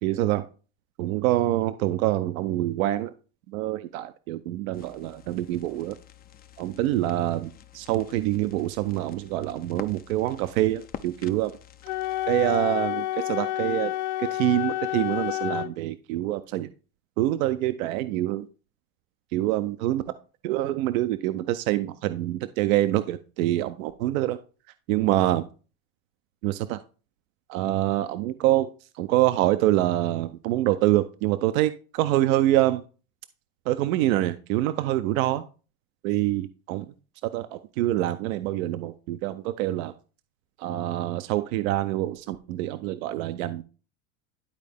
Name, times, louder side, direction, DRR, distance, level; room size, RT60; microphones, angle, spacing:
voice 1, 0.0-0.4 1.0-3.1 3.5-6.0 6.6-11.6 12.3-13.9 14.2-16.7 17.2-18.5 19.3-20.0 20.4-24.4 24.9-25.4 26.4-26.8 27.5-28.7 28.9-32.8 33.7-35.4 36.0-36.9 37.3-39.9 40.6-43.6, right 14 dB, 75° right, 11 dB, 0.7 m, -25 dB
sound 1, 4.7-12.6, left 9 dB, 25° left, 0.4 m, -47 dB
Wind instrument woodwind instrument, 11.8-15.7, left 14 dB, 75° left, 0.6 m, -29 dB
11.5 x 4.2 x 3.4 m, 0.36 s
supercardioid pair, 115°, 41 cm